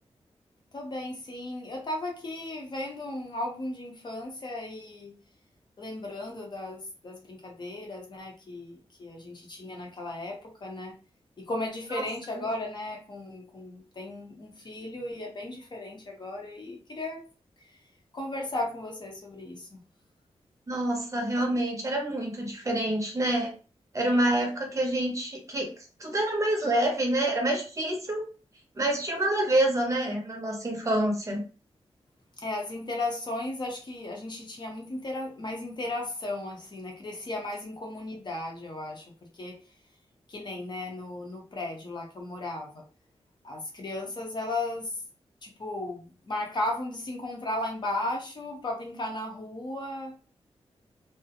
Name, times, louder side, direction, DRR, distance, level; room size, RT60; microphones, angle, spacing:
voice 1, 0.7-5.2 5.8-10.9 11.4-17.2 18.1-19.8 32.4-39.6 40.3-42.8 43.4-44.9 45.4-50.3, left 2 dB, 45° left, 0 dB, 0.7 m, -35 dB
voice 2, 20.7-23.5 23.9-25.7 26.0-28.2 28.8-31.4, right 1 dB, 30° right, 1 dB, 0.6 m, -27 dB
2.4 x 2.0 x 2.7 m, 0.36 s
wide cardioid pair, 150°, 11 cm